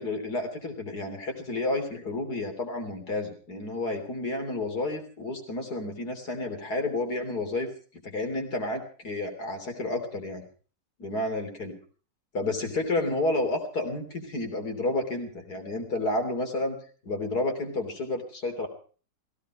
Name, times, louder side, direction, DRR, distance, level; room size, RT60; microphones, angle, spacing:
voice 1, 0.0-7.7 8.0-10.5 11.0-11.8 12.3-16.8 17.0-18.7, left 2 dB, 65° left, 4 dB, 3.8 m, -30 dB
16.5 x 16.5 x 4.9 m, 0.40 s
omnidirectional pair, 1.8 m